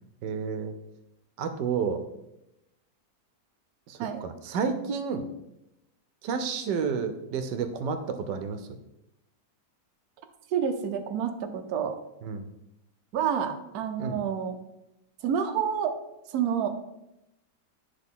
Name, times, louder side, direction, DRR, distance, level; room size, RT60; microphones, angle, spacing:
voice 1, 0.2-0.7 1.4-2.0 3.9-5.3 6.2-8.7 12.2-12.4 14.0-14.2, right 6 dB, 90° right, 8 dB, 1.3 m, -30 dB
voice 2, 10.5-12.0 13.1-14.6 15.2-16.0 16.3-16.7, right 8 dB, 70° right, 6 dB, 1.1 m, -28 dB
9.9 x 3.5 x 3.6 m, 0.89 s
omnidirectional pair, 1.8 m